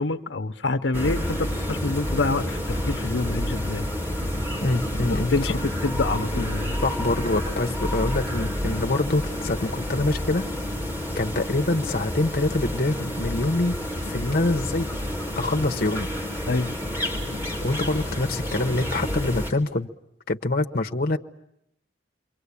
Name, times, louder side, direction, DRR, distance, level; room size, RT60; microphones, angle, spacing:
voice 1, 0.0-3.8 5.1-6.7 16.5-16.8 17.2-17.4, left 3 dB, 85° left, 9 dB, 1.0 m, -27 dB
sound 1, 0.9-19.5, left 1 dB, 10° right, 3.8 m, -29 dB
voice 2, 4.6-5.6 6.8-10.4 11.2-13.8 14.1-14.9 15.4-16.1 17.6-19.9 20.3-21.2, left 2 dB, 55° left, 4 dB, 1.1 m, -25 dB
28.5 x 24.0 x 8.5 m, 0.79 s
head